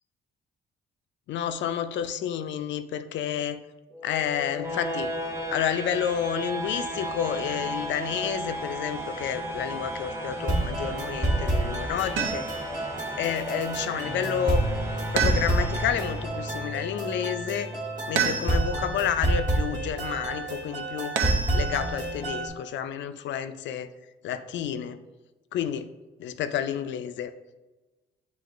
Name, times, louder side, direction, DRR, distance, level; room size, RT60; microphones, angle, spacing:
voice 1, 1.3-3.6 4.0-5.1 5.5-12.5 13.2-14.7 15.1-17.7 18.1-21.2 21.5-23.9 24.2-25.0 25.5-25.9 26.2-27.3, left 9 dB, 65° left, 10 dB, 0.4 m, -30 dB
sound 1, 3.9-16.9, right 1 dB, 15° right, 0.8 m, -35 dB
sound 2, 10.4-22.5, right 2 dB, 40° right, 1.3 m, -29 dB
sound 3, 12.2-12.7 15.2-15.9 18.2-18.9 21.2-22.0, right 7 dB, 80° right, 0.5 m, -29 dB
7.5 x 2.9 x 2.5 m, 1.2 s
cardioid pair, 90°, 20 cm